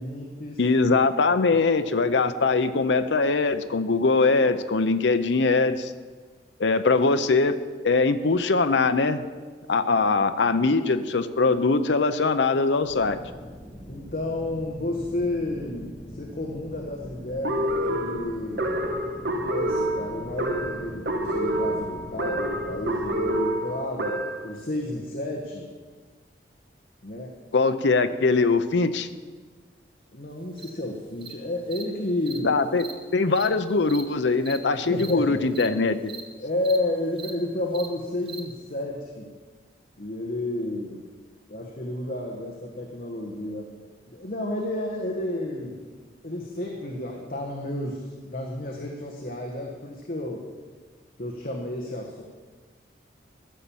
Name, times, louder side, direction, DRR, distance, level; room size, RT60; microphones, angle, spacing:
voice 1, 0.0-0.6 10.5-10.6 13.9-18.8 19.4-25.7 27.0-27.3 30.1-32.5 34.9-35.4 36.4-39.3 40.0-41.0 41.5-43.7 44.1-45.8 46.2-50.5 51.2-52.2, left 1 dB, 50° left, 0 dB, 1.3 m, -31 dB
voice 2, 0.6-5.9 6.6-7.6 7.8-9.2 9.7-13.2 27.5-29.1 32.4-32.8 33.1-36.1, left 3 dB, 85° left, 9 dB, 0.7 m, -22 dB
sound 1, 12.8-23.4, equal, 25° left, 2.6 m, -43 dB
sound 2, 17.4-24.5, right 1 dB, 70° right, 1.5 m, -27 dB
Cricket, 30.6-30.7 31.2-31.3 31.7-31.8 32.3-32.4 32.7-32.9 33.3-33.5 33.9-34.0 34.4-34.6 34.9-35.1 35.5-35.7 36.0-36.2 36.6-36.8 37.1-37.3 37.7-37.9 38.3-38.4, right 6 dB, 30° right, 1.0 m, -39 dB
14.5 x 7.4 x 7.1 m, 1.5 s
head